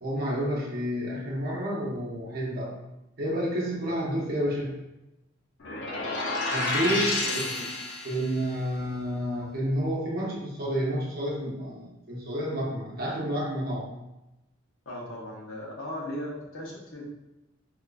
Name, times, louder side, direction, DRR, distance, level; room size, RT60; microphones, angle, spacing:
voice 1, 0.0-2.7 3.2-4.7 6.5-7.7 8.0-13.9, equal, 45° right, -4 dB, 0.8 m, -30 dB
sound 1, 5.6-8.4, left 2 dB, 55° left, 0.6 m, -30 dB
voice 2, 14.9-17.1, left 1 dB, 70° left, -4 dB, 1.0 m, -37 dB
3.7 x 3.0 x 2.3 m, 0.95 s
head